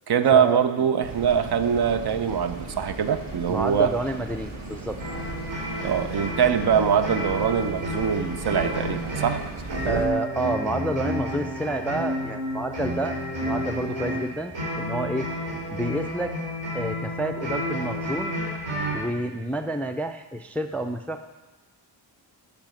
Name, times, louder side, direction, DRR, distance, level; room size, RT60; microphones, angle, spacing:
voice 1, 0.1-4.0 5.8-10.0, right 7 dB, 60° right, 10 dB, 0.7 m, -23 dB
sound 1, 1.0-10.1, right 2 dB, 40° right, 1.4 m, -37 dB
voice 2, 3.5-5.0 9.8-15.3 15.7-16.3 16.7-18.4 18.9-21.2, right 1 dB, 5° left, 7 dB, 0.3 m, -29 dB
sound 2, 5.0-19.1, equal, 75° right, 4.1 m, -31 dB
10.5 x 5.0 x 7.6 m, 1.2 s
wide cardioid pair, 120°, 45 cm